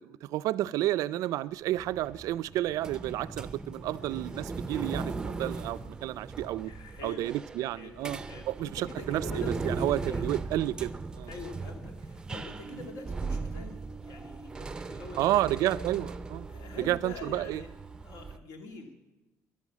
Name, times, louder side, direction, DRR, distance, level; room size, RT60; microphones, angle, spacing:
voice 1, 0.0-6.7 7.0-8.2 8.5-11.3 15.2-16.5 16.8-17.6, right 14 dB, 70° right, 19 dB, 0.4 m, -31 dB
sound 1, 1.7-18.4, right 3 dB, 15° right, 0.5 m, -38 dB
voice 2, 6.6-10.3 11.3-15.7 16.5-17.7 18.0-18.9, left 3 dB, 75° left, 5 dB, 2.3 m, -45 dB
13.5 x 11.0 x 7.3 m, 1.0 s
cardioid pair, 180°, 6 cm